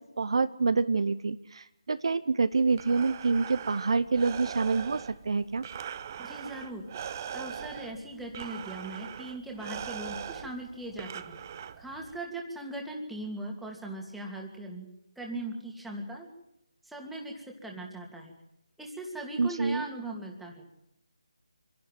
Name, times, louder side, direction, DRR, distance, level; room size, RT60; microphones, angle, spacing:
voice 1, 0.2-5.6 19.4-19.9, right 4 dB, 60° right, 13 dB, 0.8 m, -27 dB
Breathing, 2.5-12.2, right 8 dB, 30° right, 0.9 m, -41 dB
voice 2, 6.2-6.9 7.3-11.4 11.8-14.9 15.2-16.3 16.8-18.3 18.8-20.7, right 1 dB, ahead, -1 dB, 2.7 m, -39 dB
26.5 x 11.5 x 9.4 m, 0.88 s
figure-of-eight pair, 155°, 3 cm